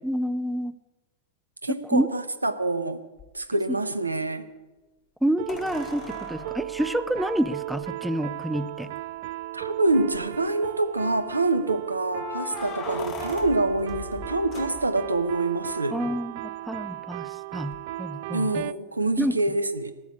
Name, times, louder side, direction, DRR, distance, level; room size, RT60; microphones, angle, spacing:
voice 1, 0.0-0.7 1.7-2.1 5.2-8.9 15.9-18.6 19.2-19.3, equal, ahead, 13 dB, 0.6 m, -28 dB
voice 2, 1.6-3.0 3.3-4.5 9.5-16.0 18.3-19.9, right 2 dB, 80° right, 12 dB, 0.9 m, -26 dB
sound 1, 3.2-3.3 5.5-7.9 8.8-8.9 9.2-9.3 9.9-10.4 12.1-15.2 17.7-17.8, left 6 dB, 30° left, 1.8 m, -39 dB
sound 2, 5.4-18.7, right 16 dB, 50° right, 0.4 m, -36 dB
13.0 x 7.1 x 8.3 m, 1.1 s
figure-of-eight pair, 90°, 0 cm